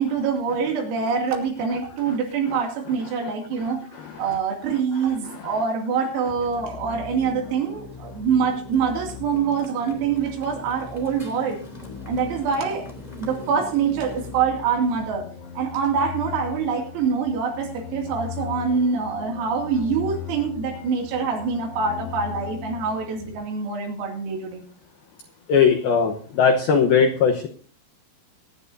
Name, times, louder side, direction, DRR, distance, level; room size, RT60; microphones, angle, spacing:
voice 1, 0.0-3.8 4.2-11.6 12.1-12.9 13.2-15.3 15.6-24.6, right 6 dB, 90° right, 2 dB, 5.3 m, -25 dB
sound 1, 6.3-23.4, left 8 dB, 65° left, 3.2 m, -39 dB
Motorcycle, 7.1-14.3, equal, 10° left, 1.9 m, -43 dB
voice 2, 25.5-27.5, left 6 dB, 85° left, 3 dB, 2.1 m, -18 dB
23.5 x 10.5 x 2.7 m, 0.44 s
omnidirectional pair, 5.9 m